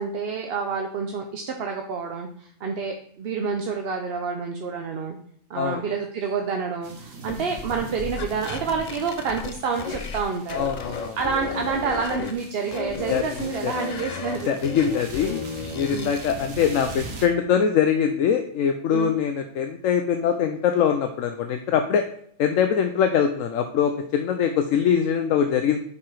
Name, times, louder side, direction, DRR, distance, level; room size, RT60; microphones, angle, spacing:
voice 1, 0.0-5.2 5.5-14.6 15.9-16.1 18.9-19.1, right 5 dB, 55° right, 3 dB, 0.9 m, -28 dB
sound 1, 6.8-17.3, right 4 dB, 85° right, 1.6 m, -41 dB
sound 2, 7.3-10.2 10.5-12.3 12.7-16.4, left 5 dB, 45° left, 0.5 m, -33 dB
voice 2, 10.5-11.2 13.1-13.2 13.6-13.7 14.5-15.4 15.7-22.0 22.4-25.8, left 8 dB, 80° left, 6 dB, 1.0 m, -23 dB
7.2 x 4.7 x 4.8 m, 0.63 s
omnidirectional pair, 1.3 m